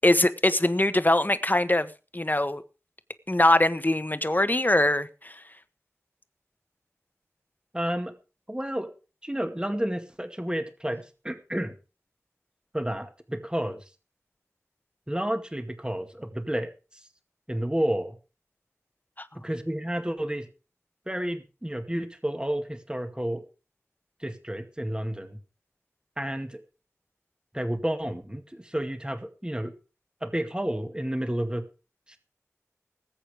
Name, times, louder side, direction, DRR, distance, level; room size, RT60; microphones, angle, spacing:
voice 1, 0.0-1.9 2.1-2.6 3.3-5.3, left 1 dB, 35° left, 12 dB, 1.4 m, -22 dB
voice 2, 7.7-8.1 8.5-8.9 9.2-11.7 12.7-13.8 15.1-17.1 17.5-18.2 19.4-20.5 21.1-23.4 24.2-25.4 26.2-26.6 27.5-29.7 30.2-31.7 32.1-32.2, right 1 dB, 15° right, 7 dB, 2.1 m, -31 dB
20.0 x 8.7 x 5.0 m, 0.34 s
wide cardioid pair, 45°, 5 cm